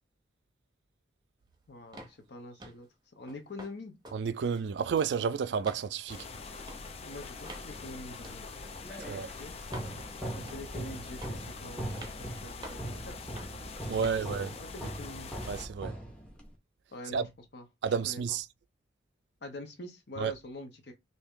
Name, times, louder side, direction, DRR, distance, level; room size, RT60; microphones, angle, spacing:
voice 1, 1.7-2.9 3.2-3.9 7.0-8.5 8.9-9.5 10.3-13.2 14.0-15.3 16.9-18.2 19.4-20.9, left 2 dB, 65° left, 0.7 m, -45 dB
sound 1, 1.9-2.2 2.6-2.9 3.3-3.7 4.0-4.2 4.5-5.2 5.6-5.9 6.6-6.8 7.5-7.7 8.2-8.4 9.0-9.2 9.7-9.9 10.5-10.8 11.2-11.5 12.0-12.2 12.6-12.9 13.4-13.6 14.0-14.2, right 1 dB, 25° right, 0.8 m, -46 dB
voice 2, 4.1-6.2 9.1-9.3 13.9-14.5 15.5-16.0 17.1-17.2 17.8-18.5 20.2-20.3, right 6 dB, 70° right, 0.3 m, -31 dB
sound 2, 6.1-15.7, left 4 dB, 35° left, 0.4 m, -44 dB
sound 3, 8.5-16.6, right 1 dB, 5° left, 0.8 m, -41 dB
3.3 x 2.7 x 3.6 m
head